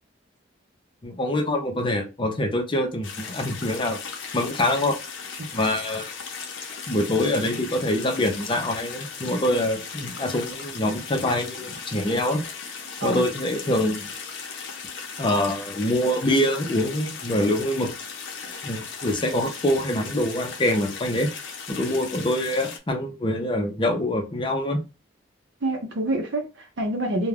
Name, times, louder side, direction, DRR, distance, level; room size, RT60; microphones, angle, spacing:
voice 1, 1.0-4.0 4.3-5.0 5.5-6.1 6.9-12.5 13.0-14.1 15.2-17.9 18.6-21.3 21.7-24.8, left 1 dB, 25° left, 0.6 m, -25 dB
sound 1, 3.0-22.8, left 5 dB, 70° left, 0.6 m, -37 dB
voice 2, 25.6-27.3, right 1 dB, 65° right, 0.6 m, -27 dB
2.4 x 2.2 x 3.2 m
head